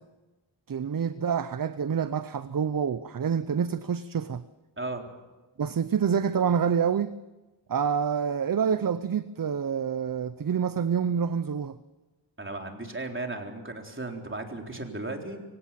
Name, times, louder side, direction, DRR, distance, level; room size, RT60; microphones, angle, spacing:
voice 1, 0.7-4.4 5.6-7.2 7.7-11.8, right 7 dB, 45° right, 0.7 m, -27 dB
voice 2, 4.8-5.1 12.4-15.4, right 2 dB, 25° right, 3.9 m, -35 dB
25.0 x 17.0 x 7.5 m
wide cardioid pair, 75°, 50 cm